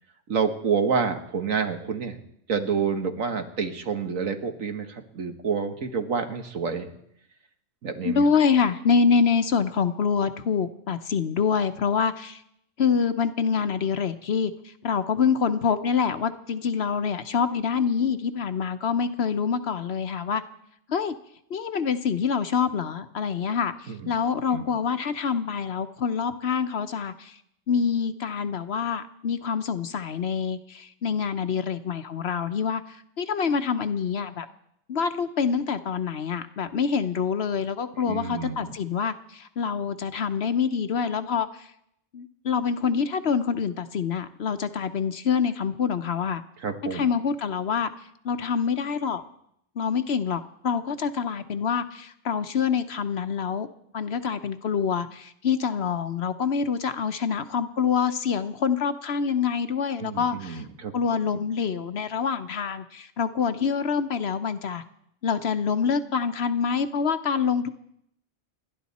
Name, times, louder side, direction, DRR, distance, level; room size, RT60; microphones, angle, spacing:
voice 1, 0.3-2.2 2.5-6.9 7.8-8.2 23.9-24.0 24.5-24.7 38.0-38.8 46.6-47.0 60.0-60.9, right 6 dB, 85° right, 6 dB, 1.9 m, -28 dB
voice 2, 8.0-12.4 12.8-20.4 20.9-21.1 21.5-27.4 27.7-34.5 34.9-41.7 42.1-46.4 46.9-47.9 48.2-49.2 49.8-53.7 53.9-60.6 60.9-64.8 65.2-67.7, left 6 dB, 55° left, 11 dB, 1.0 m, -26 dB
29.5 x 11.5 x 4.2 m, 0.74 s
omnidirectional pair, 1.3 m